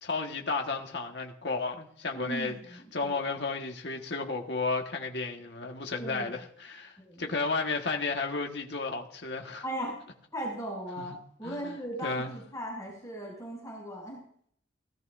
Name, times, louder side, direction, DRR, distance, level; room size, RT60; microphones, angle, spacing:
voice 1, 0.0-2.6 2.9-9.6 11.0-11.1 11.4-11.5 12.0-12.3, left 3 dB, 60° left, 1.5 m, -33 dB
voice 2, 2.1-3.1 6.0-6.3 7.0-7.3 9.6-9.9 10.3-14.2, right 1 dB, 15° left, 6.0 m, -38 dB
18.0 x 13.5 x 2.6 m
head